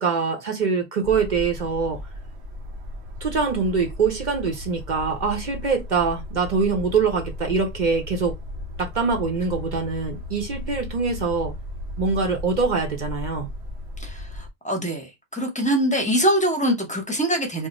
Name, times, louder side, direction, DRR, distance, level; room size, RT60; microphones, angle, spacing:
voice 1, 0.0-2.0 3.2-8.3 8.8-11.5 12.0-13.5, right 5 dB, 50° right, 0.8 m, -24 dB
sound 1, 1.0-14.5, left 1 dB, 80° right, 0.9 m, -35 dB
voice 2, 14.0-17.7, right 1 dB, 10° left, 0.6 m, -23 dB
2.4 x 2.1 x 3.9 m
omnidirectional pair, 1.1 m